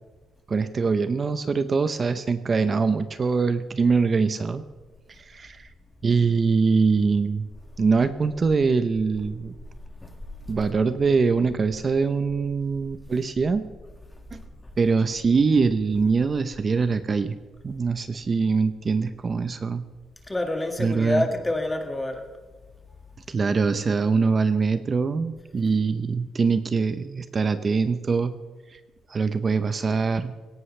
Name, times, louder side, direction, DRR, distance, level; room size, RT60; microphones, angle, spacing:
voice 1, 0.5-4.6 5.2-5.6 6.0-7.5 7.8-9.5 10.5-13.7 14.3-14.4 14.8-17.4 17.6-19.8 20.8-21.3 23.3-28.3 28.7-28.8 29.1-30.3, right 4 dB, 30° right, 11 dB, 0.7 m, -23 dB
voice 2, 20.3-22.2, left 1 dB, 10° left, 4 dB, 1.9 m, -28 dB
17.5 x 17.0 x 3.3 m, 1.4 s
cardioid pair, 135°, 0 cm